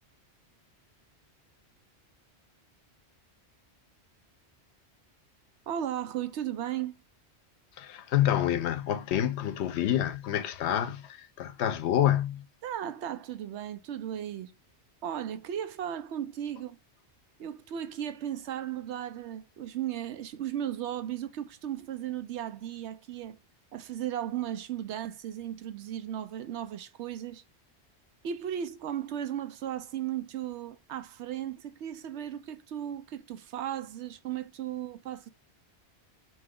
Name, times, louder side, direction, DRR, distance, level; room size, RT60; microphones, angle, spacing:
voice 1, 5.7-6.9 12.6-14.5 15.0-16.8 17.4-23.4 23.7-27.4 28.2-35.3, right 10 dB, 90° right, 0.9 m, -36 dB
voice 2, 7.8-12.5, left 11 dB, 75° left, 0.8 m, -28 dB
3.8 x 3.0 x 3.4 m
omnidirectional pair, 1.1 m